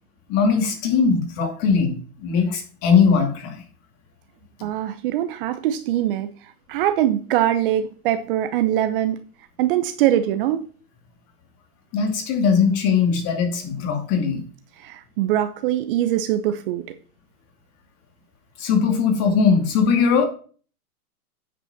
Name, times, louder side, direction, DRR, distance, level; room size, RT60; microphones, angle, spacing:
voice 1, 0.3-3.6 11.9-14.4 18.6-20.2, left 6 dB, 35° left, 3 dB, 2.5 m, -20 dB
voice 2, 4.6-6.3 6.7-9.2 9.6-10.7 14.8-16.9, right 12 dB, 35° right, 10 dB, 0.8 m, -22 dB
9.1 x 5.3 x 5.8 m, 0.42 s
hypercardioid pair, 130°, 45 cm